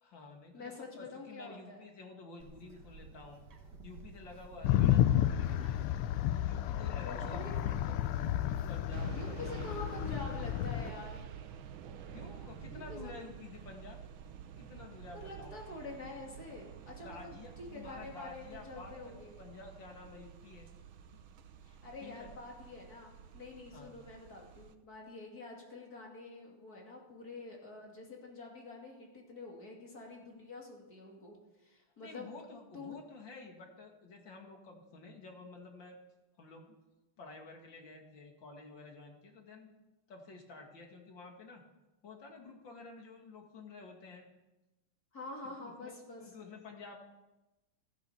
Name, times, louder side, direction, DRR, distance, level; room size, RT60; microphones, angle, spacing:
voice 1, 0.0-3.4 3.8-6.0 6.4-8.0 8.7-9.8 12.1-14.0 14.6-15.5 17.0-20.7 22.0-22.3 23.7-23.9 32.0-36.0 36.4-36.7 37.2-39.7 40.1-41.6 42.0-44.3 45.6-47.0, left 3 dB, 60° left, 2 dB, 2.8 m, -51 dB
voice 2, 0.5-1.9 7.0-7.5 9.1-11.2 12.7-13.1 15.1-19.4 21.6-32.4 32.7-32.9 45.1-46.3, left 2 dB, 45° left, -1 dB, 3.1 m, -47 dB
Bird, 2.4-11.2, right 4 dB, 55° right, 2.0 m, -52 dB
sound 1, 4.6-10.9, left 12 dB, 85° left, 1.6 m, -31 dB
sound 2, 8.9-24.8, right 9 dB, 75° right, 1.6 m, -50 dB
14.5 x 10.0 x 6.9 m, 1.0 s
omnidirectional pair, 2.4 m